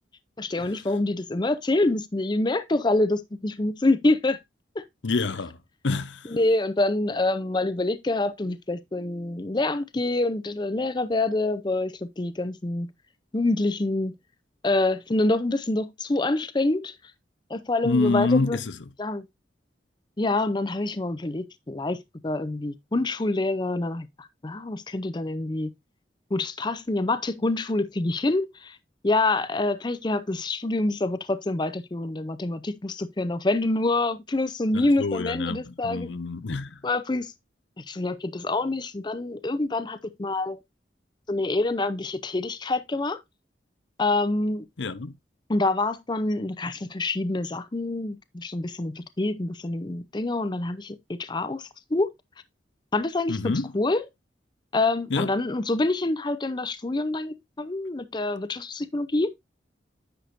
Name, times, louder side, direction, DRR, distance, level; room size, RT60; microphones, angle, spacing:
voice 1, 0.4-4.4 4.8-4.9 6.2-12.9 13.3-14.1 14.6-17.0 17.5-18.6 19.0-19.2 20.2-25.7 26.3-28.8 29.0-36.1 36.8-37.3 37.8-40.6 41.3-43.2 44.0-44.6 45.5-52.1 52.9-54.0 54.7-59.3, left 2 dB, 25° left, 0.5 m, -26 dB
voice 2, 5.0-5.6 5.8-6.3 17.8-18.7 35.0-36.8 44.8-45.1 53.3-53.7 55.1-55.3, left 3 dB, 90° left, 0.8 m, -27 dB
10.0 x 6.6 x 2.6 m
head